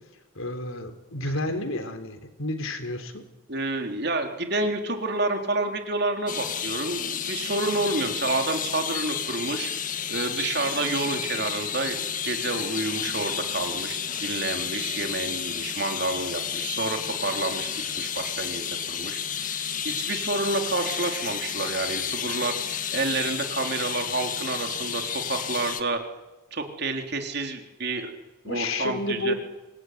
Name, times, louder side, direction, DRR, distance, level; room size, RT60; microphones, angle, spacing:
voice 1, 0.4-3.2 28.4-29.3, left 2 dB, 75° left, 8 dB, 3.8 m, -30 dB
voice 2, 3.5-9.7 10.1-19.2 19.8-22.6 22.9-26.0 26.5-28.1 28.4-29.3, right 2 dB, 50° right, 4 dB, 3.9 m, -29 dB
sound 1, 6.3-25.8, left 8 dB, 40° left, 1.8 m, -31 dB
26.5 x 20.5 x 9.6 m, 1.1 s
head